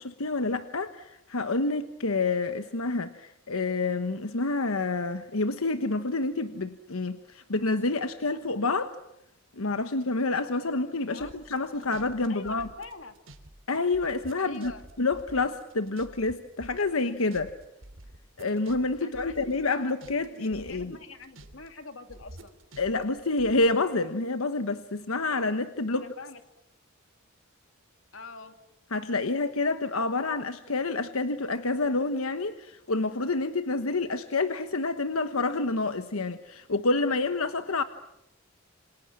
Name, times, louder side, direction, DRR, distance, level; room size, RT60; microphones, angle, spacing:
voice 1, 0.0-9.0 9.6-12.7 13.7-14.7 15.0-17.5 18.4-21.0 22.8-26.0 28.9-37.8, left 3 dB, 90° left, 9 dB, 1.2 m, -28 dB
sound 1, 11.2-13.5 13.7-16.3 16.6-20.3 20.5-21.7 22.1-23.6, right 1 dB, 65° right, 3.1 m, -49 dB
voice 2, 12.3-13.1 14.4-14.8 19.0-19.9 20.2-22.5 26.0-26.4 28.1-28.5, left 3 dB, 65° left, 7 dB, 2.7 m, -44 dB
28.0 x 27.0 x 7.6 m, 0.84 s
head